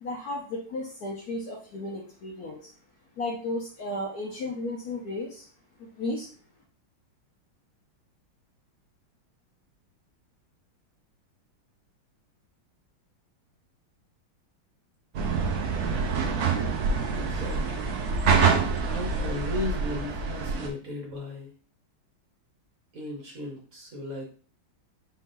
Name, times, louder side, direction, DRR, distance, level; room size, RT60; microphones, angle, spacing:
voice 1, 0.0-2.7 3.2-5.5 5.8-6.3, left 2 dB, 60° left, -1 dB, 1.1 m, -34 dB
sound 1, 15.1-20.7, right 5 dB, 85° right, 0.6 m, -26 dB
voice 2, 17.1-18.0 18.8-21.5 22.9-24.2, left 2 dB, 50° right, 0 dB, 1.3 m, -36 dB
5.2 x 3.8 x 2.6 m, 0.42 s
omnidirectional pair, 2.3 m